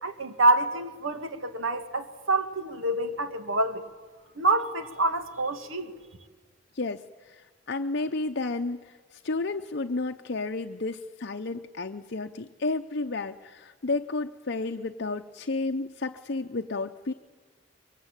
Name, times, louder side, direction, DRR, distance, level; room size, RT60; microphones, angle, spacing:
voice 1, 0.0-3.9 4.4-5.9, right 2 dB, 75° right, 8 dB, 2.0 m, -27 dB
voice 2, 6.7-17.1, left 3 dB, 55° left, 5 dB, 0.7 m, -32 dB
23.5 x 23.0 x 9.0 m, 1.4 s
head